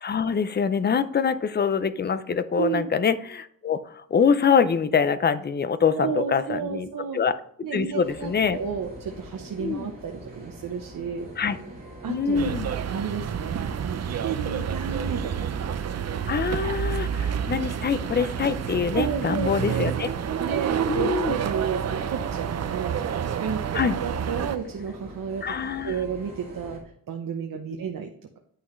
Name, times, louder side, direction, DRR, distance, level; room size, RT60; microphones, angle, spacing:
voice 1, 0.0-6.9 7.1-7.3 7.7-8.6 9.6-9.9 11.4-11.6 12.1-12.7 16.3-20.1 20.9-21.4 23.7-24.0 25.4-26.0 27.7-27.8, left 6 dB, 30° left, 13 dB, 0.5 m, -24 dB
voice 2, 2.6-2.9 6.0-7.2 7.6-11.3 12.0-12.6 12.9-13.6 13.8-15.5 18.9-19.9 20.4-23.6 24.0-25.5 25.8-26.8 27.1-28.4, right 7 dB, 75° right, 4 dB, 0.9 m, -32 dB
sound 1, 8.0-26.8, right 1 dB, 25° right, 2.5 m, -43 dB
sound 2, 12.3-24.6, right 8 dB, 50° right, 0.5 m, -29 dB
9.5 x 6.1 x 3.1 m, 0.65 s
wide cardioid pair, 140°, 34 cm